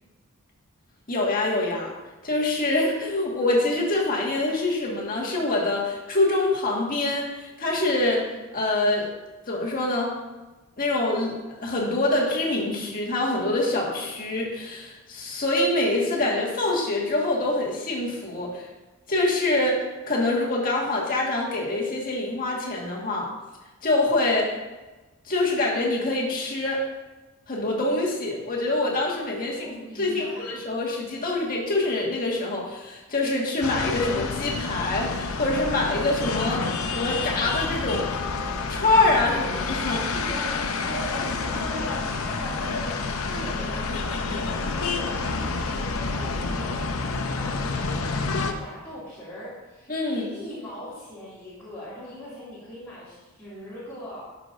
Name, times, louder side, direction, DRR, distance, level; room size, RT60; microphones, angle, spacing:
voice 1, 1.1-1.9 2.2-8.2 8.5-9.1 9.5-10.1 10.8-18.7 19.1-23.3 23.8-24.6 25.3-26.8 27.5-38.1 38.7-40.1 49.9-50.3, left 2 dB, 40° left, -3 dB, 1.7 m, -25 dB
voice 2, 29.5-30.5 40.1-54.2, equal, 10° left, -12 dB, 2.3 m, -40 dB
sound 1, 33.6-48.5, left 4 dB, 70° left, 0.7 m, -29 dB
12.0 x 5.9 x 2.6 m, 1.2 s
head